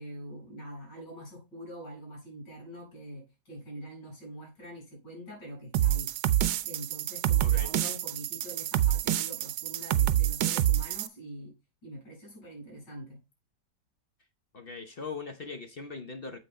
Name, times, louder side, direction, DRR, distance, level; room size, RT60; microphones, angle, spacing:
voice 1, 0.0-11.5 11.8-13.2, right 1 dB, 80° left, 6.0 m, -44 dB
sound 1, 5.7-11.1, right 12 dB, 70° right, 1.1 m, -27 dB
voice 2, 7.4-7.7 14.5-16.4, left 4 dB, 40° left, 0.9 m, -40 dB
7.8 x 5.9 x 4.3 m
omnidirectional pair, 1.9 m